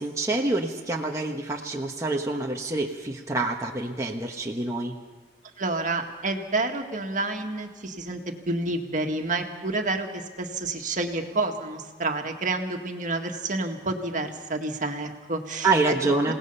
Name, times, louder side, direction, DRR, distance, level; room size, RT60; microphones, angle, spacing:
voice 1, 0.0-4.9 15.6-16.3, right 3 dB, 15° right, -1 dB, 1.2 m, -26 dB
voice 2, 5.6-8.2 8.5-15.7 16.3-16.4, right 2 dB, 45° right, 4 dB, 1.9 m, -29 dB
28.5 x 18.5 x 5.6 m, 1.3 s
head